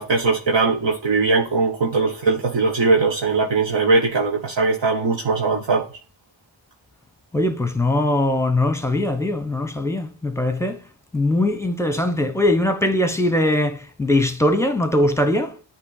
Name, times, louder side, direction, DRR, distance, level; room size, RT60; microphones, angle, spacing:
voice 1, 0.0-5.9, right 3 dB, 65° right, 1.2 m, -20 dB
voice 2, 7.3-10.8 11.1-15.6, left 1 dB, 5° left, 0.9 m, -21 dB
8.7 x 3.0 x 4.0 m
cardioid pair, 65°, 47 cm